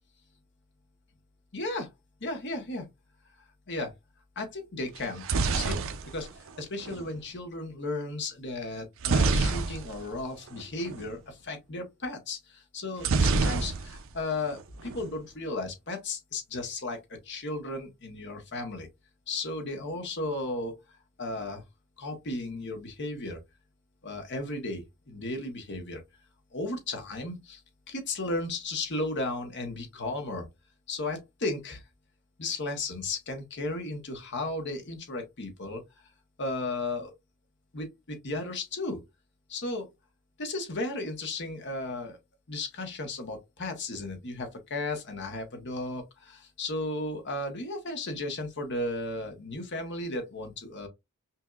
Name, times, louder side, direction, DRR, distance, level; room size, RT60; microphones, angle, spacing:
voice 1, 1.5-1.9 2.2-2.9 3.7-3.9 4.4-5.2 5.5-5.8 6.0-18.9 19.3-21.6 22.0-23.4 24.0-26.0 26.5-27.6 27.9-30.5 30.9-31.8 32.4-35.8 36.4-37.1 37.7-39.0 39.5-39.9 40.4-42.2 42.5-50.9, left 2 dB, 55° left, 1.2 m, -35 dB
sound 1, 5.0-7.1 9.0-10.2 10.5-10.6 10.9-11.1 13.0-14.2 14.5-15.1, right 4 dB, 65° right, 0.6 m, -27 dB
5.6 x 2.6 x 2.4 m
head